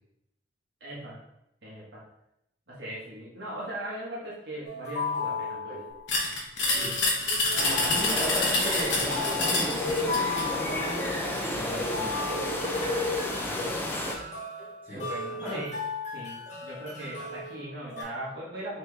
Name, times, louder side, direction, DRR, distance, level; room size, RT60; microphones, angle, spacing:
voice 1, 0.8-1.2 1.6-2.0 2.7-5.8 13.4-14.2 14.9-15.8 16.1-18.8, right 1 dB, 55° right, -6 dB, 1.3 m, -39 dB
sound 1, 4.6-6.2 6.6-18.0, left 3 dB, 35° left, 0.9 m, -36 dB
sound 2, 6.1-10.5, left 2 dB, 75° left, 1.0 m, -27 dB
voice 2, 6.7-7.0 7.6-12.2 14.8-15.1 15.3-15.7, equal, 10° right, -9 dB, 1.4 m, -36 dB
sound 3, 7.6-14.1, left 1 dB, 10° left, 0.4 m, -31 dB
4.4 x 3.1 x 3.4 m, 0.83 s
head